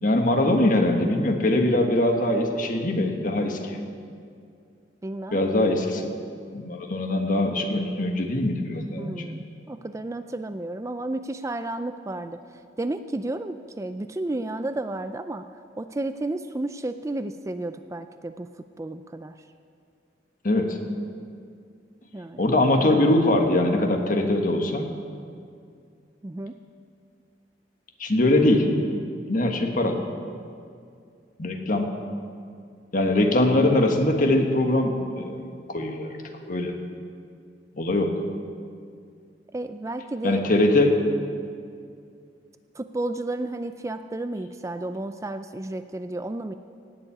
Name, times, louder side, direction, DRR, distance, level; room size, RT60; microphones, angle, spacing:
voice 1, 0.0-3.8 5.3-6.1 6.5-9.2 20.4-20.8 22.4-24.9 28.0-28.7 29.3-30.0 31.4-31.9 32.9-35.4 35.7-36.2 36.4-36.7 37.8-38.1 40.2-41.0, left 1 dB, 50° left, 4 dB, 1.5 m, -22 dB
voice 2, 5.0-5.4 9.0-12.4 12.8-15.4 15.8-18.5 18.8-19.3 22.1-22.4 26.2-26.6 39.5-40.5 42.8-46.6, right 2 dB, 15° right, 10 dB, 0.4 m, -32 dB
18.0 x 7.3 x 8.5 m, 2.3 s
head